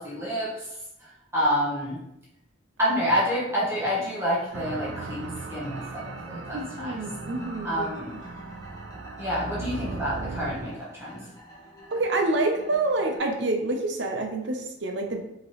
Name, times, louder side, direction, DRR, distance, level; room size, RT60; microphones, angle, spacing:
voice 1, 0.0-2.0 2.8-7.0 7.6-8.2 9.2-11.3, equal, 15° right, -7 dB, 1.0 m, -28 dB
sound 1, 4.5-13.2, equal, 20° left, 1.0 m, -46 dB
sound 2, 4.5-10.8, right 4 dB, 80° right, 0.3 m, -38 dB
voice 2, 6.5-8.1 11.9-15.3, right 2 dB, 65° right, 3 dB, 0.7 m, -27 dB
5.2 x 3.0 x 3.0 m, 0.84 s
head